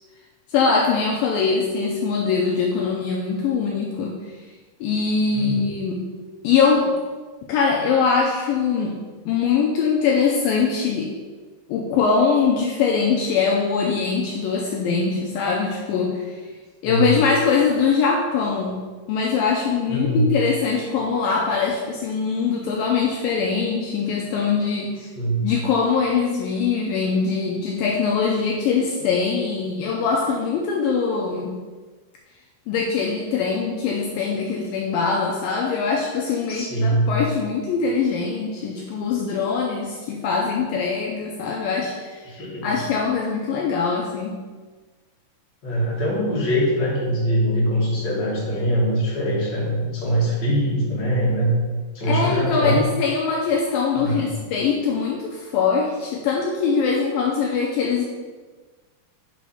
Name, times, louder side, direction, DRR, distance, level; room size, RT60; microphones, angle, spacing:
voice 1, 0.5-4.2 4.8-6.0 6.4-6.9 7.5-9.0 9.3-11.1 11.7-16.4 16.8-18.8 19.1-25.0 25.4-31.5 32.7-42.3 42.6-44.4 52.0-58.0, left 5 dB, 85° left, -1 dB, 2.0 m, -22 dB
voice 2, 16.8-17.2 19.9-20.3 25.1-25.4 36.5-37.1 42.2-42.8 45.6-51.6 51.9-52.8 53.9-54.4, right 1 dB, 45° left, -5 dB, 1.5 m, -22 dB
6.0 x 4.9 x 5.5 m, 1.4 s
omnidirectional pair, 4.8 m